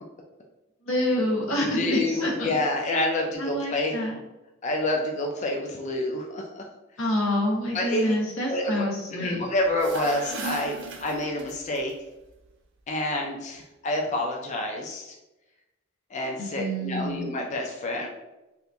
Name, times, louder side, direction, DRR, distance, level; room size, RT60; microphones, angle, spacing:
voice 1, 0.8-2.6 3.4-4.2 7.0-9.4 16.4-17.3, left 1 dB, 90° left, -2 dB, 0.9 m, -27 dB
voice 2, 1.6-3.9 4.6-6.6 7.7-8.2 8.5-11.9 12.9-15.1 16.1-18.1, left 1 dB, 35° left, 1 dB, 0.3 m, -28 dB
sound 1, 9.6-11.8, right 4 dB, 65° right, 0.5 m, -37 dB
2.8 x 2.5 x 3.3 m, 1.0 s
head